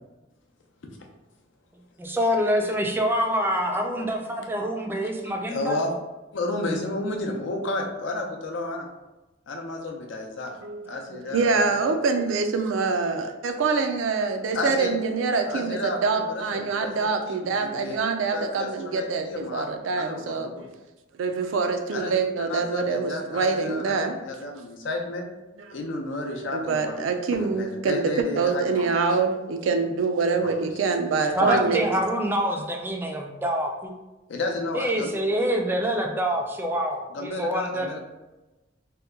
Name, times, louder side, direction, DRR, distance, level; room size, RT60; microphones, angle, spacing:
voice 1, 2.0-5.8 31.3-33.9 34.7-37.9, equal, 10° right, 2 dB, 0.3 m, -26 dB
voice 2, 5.5-5.9 6.3-8.9 9.5-10.5 10.8-11.8 14.5-14.9 15.4-18.0 18.3-19.7 19.9-20.7 21.9-25.3 25.7-26.9 27.4-28.8 30.3-30.7 31.4-32.0 34.3-35.1 37.1-38.0, left 2 dB, 70° left, 2 dB, 0.5 m, -32 dB
voice 3, 10.6-20.5 21.2-24.2 26.5-31.8, right 4 dB, 90° right, 6 dB, 0.4 m, -25 dB
2.8 x 2.2 x 3.5 m, 1.1 s
head